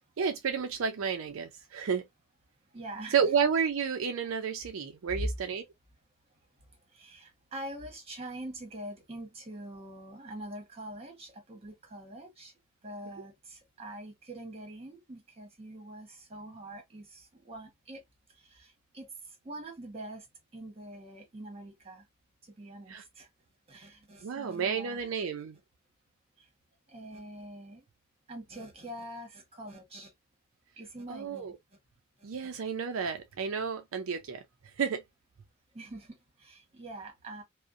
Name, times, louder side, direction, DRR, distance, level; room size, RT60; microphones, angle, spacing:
voice 1, 0.2-2.0 3.1-5.6 22.9-23.0 24.2-25.6 31.1-31.5 32.2-34.4 34.8-35.0, right 6 dB, 75° right, 0.4 m, -31 dB
voice 2, 2.7-3.2 5.1-5.3 6.9-12.5 12.8-18.0 18.4-19.1 19.4-20.2 20.5-22.0 22.6-23.3 23.7-25.4 26.9-27.8 28.3-30.1 30.8-31.5 35.7-37.4, right 1 dB, 30° right, 1.1 m, -44 dB
2.6 x 2.1 x 2.4 m
head